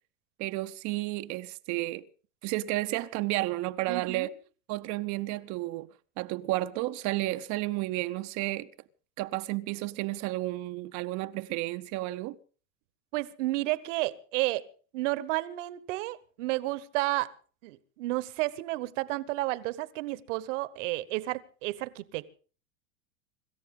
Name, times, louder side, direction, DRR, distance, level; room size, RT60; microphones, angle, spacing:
voice 1, 0.4-2.1 2.4-4.3 4.7-5.9 6.2-8.7 9.2-12.4, right 18 dB, 45° right, 0.8 m, -32 dB
voice 2, 3.9-4.3 13.1-14.6 14.9-17.3 17.6-22.3, right 19 dB, 65° right, 1.3 m, -31 dB
25.5 x 13.5 x 3.8 m
hypercardioid pair, 115°, 40 cm